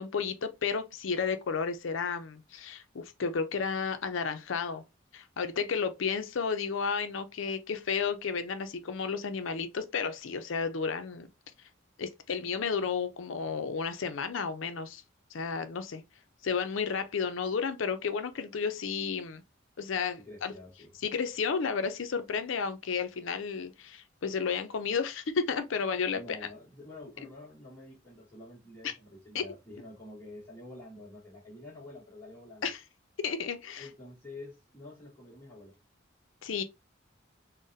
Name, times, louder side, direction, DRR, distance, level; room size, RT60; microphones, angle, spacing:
voice 1, 0.0-4.8 5.1-11.3 12.0-15.0 15.3-16.0 16.4-19.4 19.8-20.5 21.0-26.4 28.8-28.9 29.3-29.4 32.6-32.8 33.2-33.8 36.4-36.6, left 5 dB, 75° left, 0.5 m, -32 dB
voice 2, 20.2-20.9 26.0-32.7 33.8-35.8, left 2 dB, 15° left, 1.2 m, -48 dB
3.9 x 2.1 x 2.6 m
head